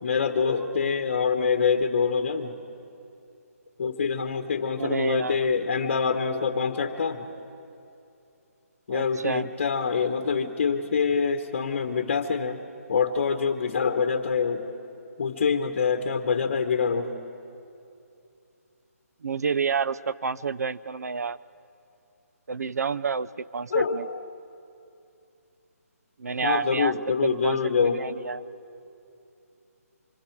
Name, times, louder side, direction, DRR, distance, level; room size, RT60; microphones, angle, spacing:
voice 1, 0.0-2.6 3.8-7.3 8.9-12.6 12.9-14.7 15.2-17.1 23.7-24.2 26.4-28.0, left 5 dB, 40° left, 6 dB, 1.1 m, -25 dB
voice 2, 4.8-5.5 8.9-9.5 19.2-21.4 22.5-24.1 26.2-26.9 27.2-28.4, right 5 dB, 85° right, 17 dB, 0.5 m, -29 dB
25.5 x 25.0 x 4.6 m, 2.7 s
hypercardioid pair, 170°, 8 cm